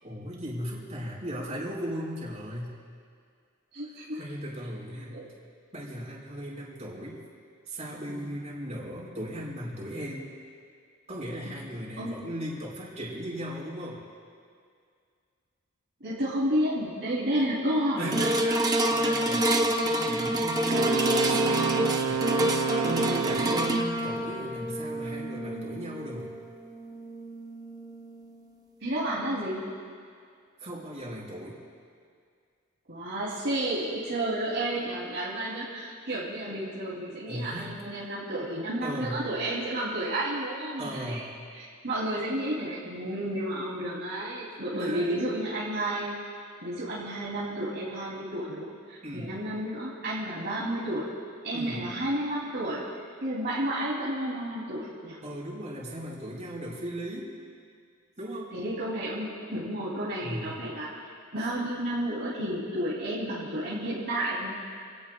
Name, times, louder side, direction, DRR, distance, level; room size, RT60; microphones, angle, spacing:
voice 1, 0.0-2.7 4.1-5.2 5.7-7.2 7.7-10.3 11.1-14.0 18.0-18.3 18.9-26.3 30.6-31.6 37.3-37.8 38.8-39.3 40.8-41.3 44.8-45.3 49.0-49.4 51.5-51.9 55.2-57.3 58.2-58.6 60.2-60.6, equal, 35° right, -5 dB, 5.1 m, -37 dB
voice 2, 3.7-4.2 5.1-5.3 8.1-8.3 11.4-11.6 12.0-12.1 16.0-18.4 19.3-19.4 20.0-20.2 28.8-29.7 32.9-41.2 41.5-46.1 46.6-51.1 51.4-52.8 53.2-55.2 58.5-60.9 61.3-64.5, right 1 dB, 55° right, -8 dB, 3.0 m, -31 dB
sound 1, 18.1-28.5 29.1-29.2, right 1 dB, 20° right, 0.9 m, -28 dB
Wind instrument woodwind instrument, 20.7-23.9, right 6 dB, 75° right, 0.4 m, -29 dB
29.0 x 18.0 x 2.3 m, 2.2 s
head